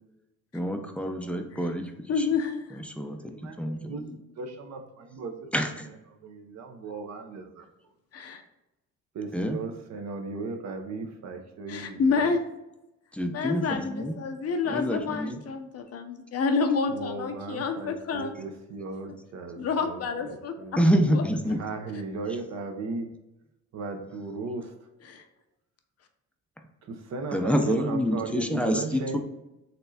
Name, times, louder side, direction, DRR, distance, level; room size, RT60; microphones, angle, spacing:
voice 1, 0.5-1.9 2.2-2.3 2.7-3.2 3.6-4.2 5.5-5.9 9.3-9.6 13.1-14.2 14.7-15.4 20.8-21.6 27.3-29.2, equal, 5° left, 4 dB, 0.5 m, -27 dB
voice 2, 2.1-2.8 8.1-8.4 11.7-12.4 13.3-18.4 19.6-20.5 21.1-21.2 25.0-25.2, left 5 dB, 55° left, 6 dB, 0.6 m, -28 dB
voice 3, 3.2-4.1 4.4-5.4 6.2-7.6 9.1-12.3 16.9-20.8 21.6-23.1 23.7-24.7 26.9-29.2, right 3 dB, 60° right, 5 dB, 0.7 m, -36 dB
4.2 x 3.2 x 2.7 m, 0.94 s
cardioid pair, 90°, 30 cm